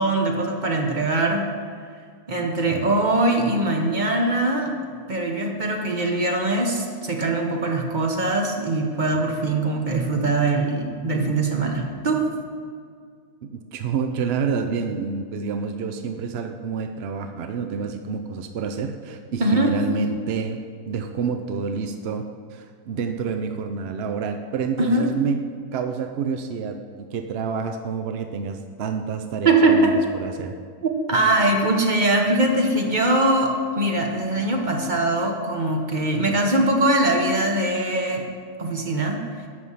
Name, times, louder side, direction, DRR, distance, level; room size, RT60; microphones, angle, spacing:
voice 1, 0.0-1.5 2.3-12.3 19.4-19.8 24.8-25.1 29.4-30.0 30.8-38.3 38.6-39.2, right 2 dB, 35° right, 2 dB, 1.1 m, -22 dB
voice 2, 13.4-20.6 20.9-22.2 22.5-25.4 25.7-26.8 27.1-30.5, right 6 dB, 60° right, 6 dB, 0.7 m, -28 dB
11.0 x 7.0 x 5.6 m, 2.1 s
omnidirectional pair, 1.6 m